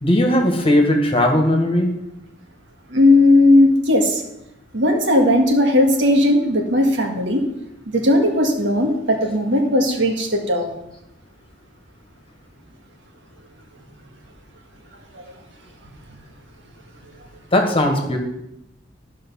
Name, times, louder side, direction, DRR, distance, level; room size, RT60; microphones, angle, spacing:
voice 1, 0.0-1.9 17.5-18.2, left 1 dB, 30° left, 3 dB, 1.6 m, -17 dB
voice 2, 2.9-4.2 4.7-7.4 7.9-10.7 15.1-15.2, left 1 dB, 70° right, 2 dB, 1.8 m, -16 dB
13.5 x 5.4 x 5.6 m, 0.86 s
head